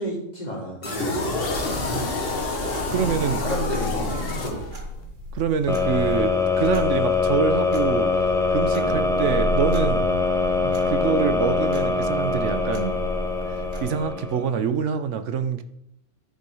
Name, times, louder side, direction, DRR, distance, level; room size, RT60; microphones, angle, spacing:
voice 1, 0.0-1.4 3.3-4.6 8.8-9.1, equal, 35° left, -3 dB, 2.9 m, -31 dB
sound 1, 0.8-5.0, left 2 dB, 50° left, 1.6 m, -28 dB
sound 2, 2.3-14.0, left 1 dB, 40° right, 1.6 m, -33 dB
voice 2, 2.9-3.4 5.3-8.1 8.5-10.0 10.9-13.0 13.4-15.6, right 7 dB, 75° right, 10 dB, 1.1 m, -25 dB
sound 3, 5.7-14.6, left 4 dB, 5° left, 0.9 m, -23 dB
10.5 x 6.7 x 4.8 m, 0.78 s
omnidirectional pair, 1.3 m